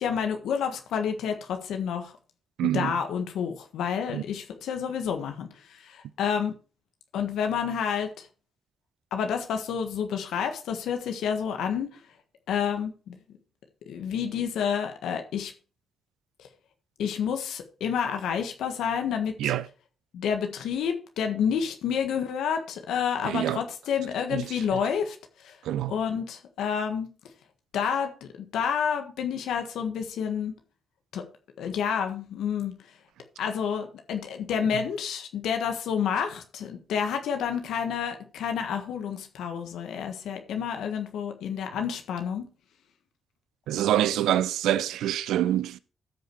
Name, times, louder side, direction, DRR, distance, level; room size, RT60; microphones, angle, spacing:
voice 1, 0.0-2.1 2.6-6.5 7.1-8.3 9.1-11.9 12.5-13.2 13.9-15.5 16.4-16.5 17.0-19.5 20.1-25.6 25.9-27.1 27.7-30.5 31.1-31.2 31.6-32.7 33.4-42.5, left 7 dB, 80° left, 1.5 m, -29 dB
voice 2, 2.6-2.9 4.1-4.2 19.4-19.7 23.2-23.6 24.3-24.5 24.7-24.8 25.6-25.9 34.7-34.8 43.7-45.8, right 12 dB, 85° right, 0.5 m, -26 dB
14.5 x 5.2 x 4.6 m
supercardioid pair, 55°, 0 cm